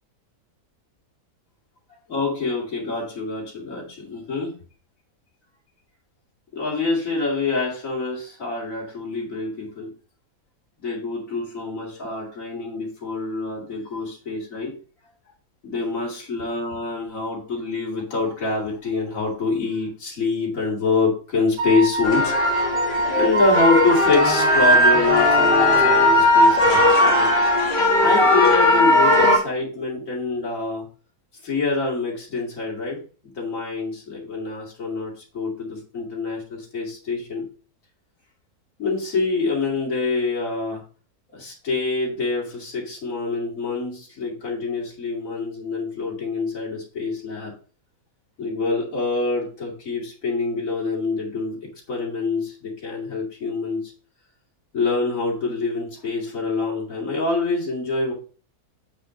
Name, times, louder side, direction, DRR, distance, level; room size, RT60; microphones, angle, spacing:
voice 1, 2.1-4.5 6.5-9.9 10.8-14.7 15.6-22.3 22.6-22.9 23.2-27.3 28.0-30.8 31.4-33.0 33.4-37.4 38.8-40.8 41.3-47.5 48.4-51.6 51.9-53.8 54.7-58.1, left 3 dB, 60° left, -3 dB, 2.9 m, -25 dB
Wind instrument woodwind instrument, 21.6-27.7, right 2 dB, 80° right, 1.6 m, -24 dB
sound 1, 22.0-29.4, left 1 dB, 35° left, 1.6 m, -18 dB
8.3 x 5.8 x 3.8 m, 0.39 s
omnidirectional pair, 1.6 m